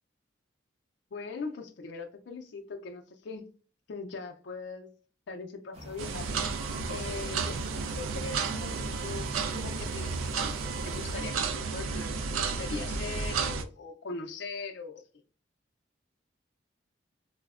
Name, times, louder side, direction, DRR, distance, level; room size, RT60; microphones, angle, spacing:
voice 1, 1.1-3.5 3.9-4.9 5.3-6.3 6.9-10.5 10.8-15.0, left 4 dB, 60° left, 0.4 m, -41 dB
sound 1, 5.7-11.2, right 1 dB, 30° right, 0.5 m, -46 dB
sound 2, 6.0-13.6, right 5 dB, 90° right, 0.4 m, -32 dB
4.3 x 2.0 x 2.3 m
head